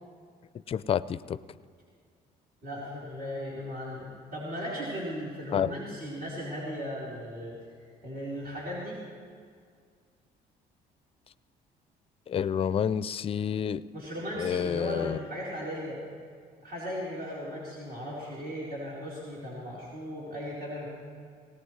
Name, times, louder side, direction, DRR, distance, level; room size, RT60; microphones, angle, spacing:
voice 1, 0.7-1.4 5.5-5.7 12.3-13.8 14.4-15.2, left 8 dB, 35° left, 16 dB, 0.4 m, -29 dB
voice 2, 2.6-7.6 8.0-9.0 13.9-16.0 16.6-20.9, equal, 65° right, -8 dB, 4.0 m, -37 dB
20.0 x 18.0 x 3.2 m, 2.1 s
cardioid pair, 110°, 17 cm